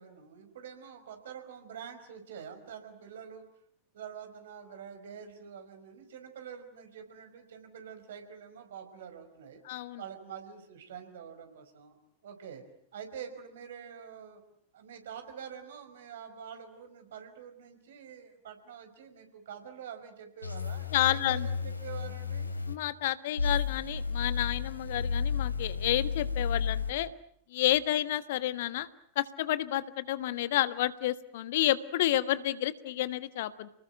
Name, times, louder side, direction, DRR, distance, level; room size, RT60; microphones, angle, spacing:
voice 1, 0.0-3.4 3.9-9.6 10.0-12.0 12.2-12.6 12.9-14.4 14.7-22.5, right 7 dB, 60° right, 7 dB, 5.2 m, -46 dB
voice 2, 9.7-10.0 20.9-21.5 22.7-27.1 27.5-28.9 29.1-33.7, left 14 dB, 55° left, 14 dB, 1.4 m, -30 dB
sound 1, 20.4-22.7 23.4-26.9, left 5 dB, 85° left, 2.8 m, -32 dB
30.0 x 20.0 x 9.1 m, 0.69 s
figure-of-eight pair, 90°, 0 cm